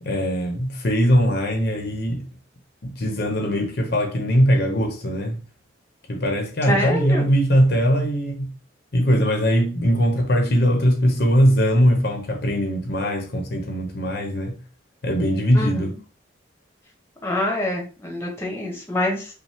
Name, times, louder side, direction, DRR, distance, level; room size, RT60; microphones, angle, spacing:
voice 1, 0.0-2.2 2.8-5.4 6.1-8.5 8.9-14.6 15.0-15.9, equal, 50° left, 0.9 m, -20 dB
voice 2, 6.7-7.3 15.5-15.9 17.2-19.3, left 1 dB, 10° left, 1.0 m, -25 dB
5.3 x 2.1 x 3.5 m
head